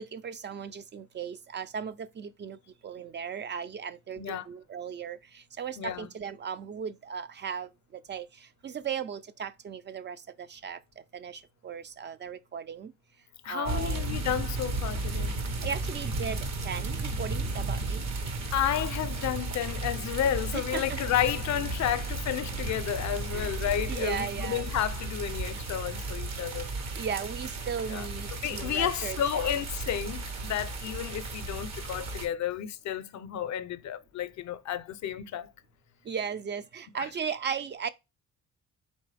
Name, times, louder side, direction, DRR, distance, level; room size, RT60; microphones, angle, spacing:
voice 1, 0.0-2.6 2.8-10.8 11.1-12.9 13.5-14.0 15.6-18.0 20.5-20.8 23.3-23.5 23.9-24.6 27.0-29.6 36.1-37.9, right 7 dB, 35° right, 0.4 m, -37 dB
voice 2, 4.2-4.5 5.8-6.1 13.4-15.3 18.5-26.7 27.9-28.1 28.4-35.5 37.0-37.1, left 10 dB, 65° left, 0.6 m, -31 dB
sound 1, 13.7-32.3, right 2 dB, 60° right, 1.1 m, -34 dB
4.3 x 3.0 x 3.3 m
cardioid pair, 90°, 30 cm